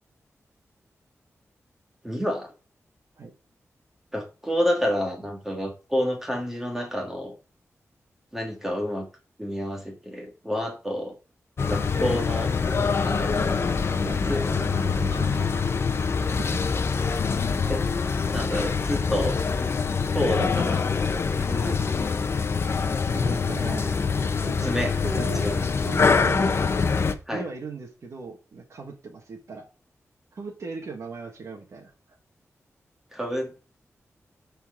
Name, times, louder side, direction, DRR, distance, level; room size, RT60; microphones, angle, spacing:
voice 1, 2.0-2.5 4.1-7.3 8.3-9.1 9.4-11.1 11.7-12.5 13.0-13.4 14.3-14.4 17.7-17.8 18.3-19.4 20.1-20.9 21.5-21.8 24.6-25.7 27.3-27.4 33.1-33.5, equal, 5° right, 2 dB, 1.8 m, -29 dB
sound 1, 11.6-27.1, left 5 dB, 50° left, 0.8 m, -25 dB
voice 2, 13.2-13.6 14.0-14.2 14.5-15.5 15.9-16.0 16.5-16.7 23.1-24.7 25.0-25.4 25.8-26.6 27.3-29.7 30.3-31.9, right 3 dB, 65° right, -1 dB, 1.7 m, -38 dB
13.5 x 4.5 x 3.8 m, 0.33 s
wide cardioid pair, 140°, 5 cm